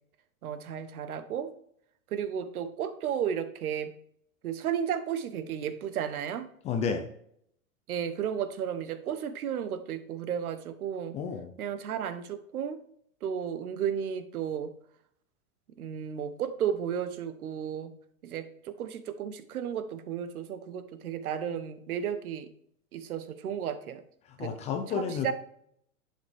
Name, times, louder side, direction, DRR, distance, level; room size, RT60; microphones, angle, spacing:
voice 1, 0.4-1.5 2.1-3.9 4.4-6.5 7.9-11.1 11.6-12.8 13.2-14.7 15.8-17.9 18.2-22.5 22.9-24.0 24.4-24.5 24.9-25.3, right 8 dB, 80° right, 12 dB, 1.2 m, -33 dB
voice 2, 6.6-7.1 11.1-11.5 24.4-25.3, left 6 dB, 15° left, 6 dB, 0.4 m, -31 dB
10.5 x 7.3 x 3.5 m, 0.68 s
hypercardioid pair, 135°, 43 cm